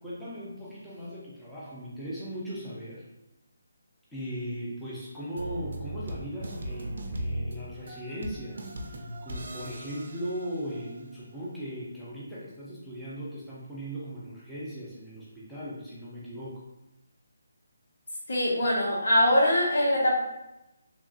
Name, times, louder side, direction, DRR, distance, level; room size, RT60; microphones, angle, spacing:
voice 1, 0.0-3.0 4.1-16.6, equal, 5° left, -10 dB, 0.6 m, -38 dB
Shades of pure evil, 5.3-11.1, right 1 dB, 60° right, 0.4 m, -38 dB
voice 2, 18.3-20.2, left 1 dB, 65° left, -3 dB, 0.9 m, -23 dB
3.0 x 2.4 x 2.4 m, 0.94 s
figure-of-eight pair, 155°, 0 cm